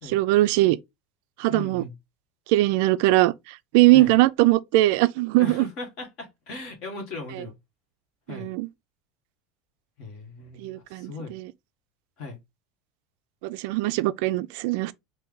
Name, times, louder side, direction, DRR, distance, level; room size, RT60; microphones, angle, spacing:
voice 1, 0.0-0.8 1.4-1.8 2.5-5.7 7.4-7.5 8.3-8.7 10.6-11.5 13.4-14.9, right 18 dB, 60° right, 0.3 m, -21 dB
voice 2, 1.5-1.9 3.9-4.1 5.4-7.6 8.3-8.5 10.0-11.3 12.2-12.4, left 3 dB, 40° left, 1.8 m, -38 dB
4.4 x 2.6 x 3.8 m
cardioid pair, 180°, 0 cm